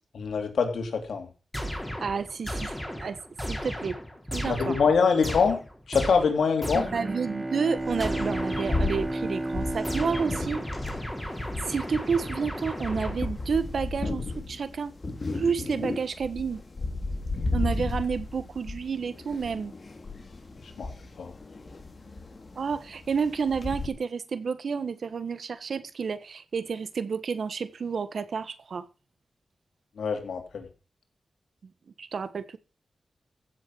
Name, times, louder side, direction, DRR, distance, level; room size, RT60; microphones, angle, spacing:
voice 1, 0.1-1.3 4.4-5.6 5.9-6.9 20.8-20.9 21.2-21.3 30.0-30.7, left 5 dB, 90° left, 3.2 m, -24 dB
sound 1, 1.5-7.2 8.0-9.3 9.8-13.5, equal, 5° left, 4.2 m, -35 dB
voice 2, 2.0-3.2 3.4-4.0 4.3-4.8 6.7-10.7 11.6-15.0 15.3-16.6 17.5-19.7 22.6-28.9 32.0-32.6, right 5 dB, 75° right, 1.3 m, -30 dB
Bowed string instrument, 6.7-11.6, right 1 dB, 25° right, 1.3 m, -33 dB
sound 2, 7.8-23.9, left 2 dB, 45° left, 3.6 m, -35 dB
15.5 x 7.1 x 6.2 m
cardioid pair, 70°, 0 cm